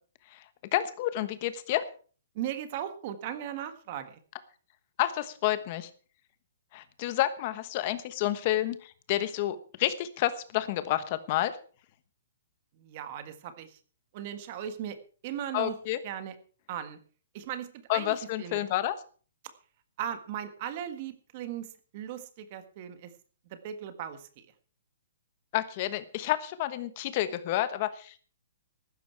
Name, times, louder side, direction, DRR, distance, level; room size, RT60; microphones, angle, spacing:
voice 1, 0.7-1.9 5.0-5.9 6.7-11.6 15.5-16.0 17.9-19.0 25.5-28.3, left 14 dB, 25° left, 13 dB, 1.2 m, -29 dB
voice 2, 2.3-4.2 12.8-13.8 14.1-15.0 15.2-15.7 16.0-16.3 16.7-17.0 17.3-18.6 20.0-21.7 21.9-23.1 23.5-24.3, right 10 dB, 30° right, 10 dB, 1.6 m, -37 dB
15.0 x 12.5 x 4.7 m, 0.40 s
hypercardioid pair, 175°, 0 cm